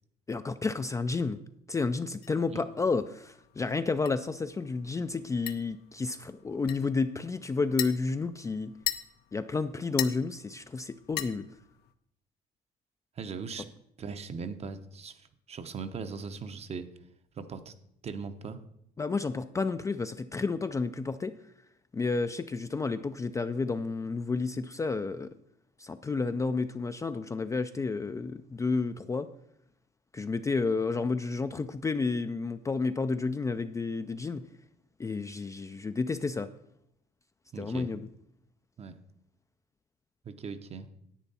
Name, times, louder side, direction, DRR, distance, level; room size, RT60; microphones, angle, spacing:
voice 1, 0.3-1.4 1.7-8.7 9.3-11.5 19.0-21.3 21.9-25.3 25.8-29.3 30.1-34.4 35.0-36.5 37.6-38.0, left 4 dB, 20° left, 10 dB, 0.3 m, -31 dB
sound 1, 2.2-11.9, left 13 dB, 75° left, 0.7 m, -41 dB
voice 2, 13.2-13.7 14.0-16.9 17.4-17.7 18.0-18.6 37.5-37.9 38.8-39.0 40.2-40.9, right 5 dB, 40° right, 10 dB, 0.8 m, -39 dB
10.0 x 8.2 x 4.2 m, 0.75 s
cardioid pair, 110°, 17 cm